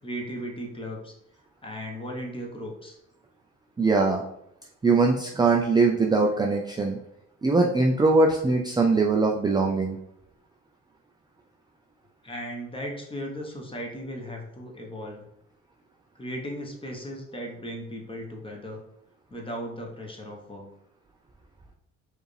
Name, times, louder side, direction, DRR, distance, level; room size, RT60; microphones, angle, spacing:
voice 1, 0.0-1.1 1.6-3.0 12.2-15.2 16.2-18.8 19.3-20.7, equal, 15° left, 0 dB, 1.0 m, -36 dB
voice 2, 3.8-4.2 4.8-7.0 7.4-10.0, right 3 dB, 15° right, 0 dB, 0.4 m, -21 dB
4.7 x 2.6 x 3.2 m, 0.78 s
cardioid pair, 90°, 30 cm